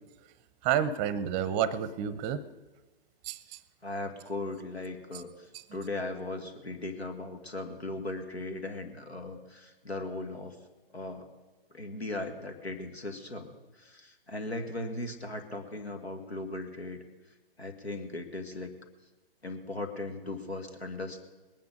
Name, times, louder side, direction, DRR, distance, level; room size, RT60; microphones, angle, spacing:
voice 1, 0.6-2.4 3.2-3.6, right 9 dB, 25° right, 17 dB, 0.6 m, -29 dB
voice 2, 3.8-10.6 10.9-11.3 11.7-17.0 17.6-18.7 19.4-21.2, left 2 dB, 90° left, 5 dB, 1.9 m, -38 dB
20.5 x 9.5 x 5.2 m, 1.2 s
figure-of-eight pair, 120°, 31 cm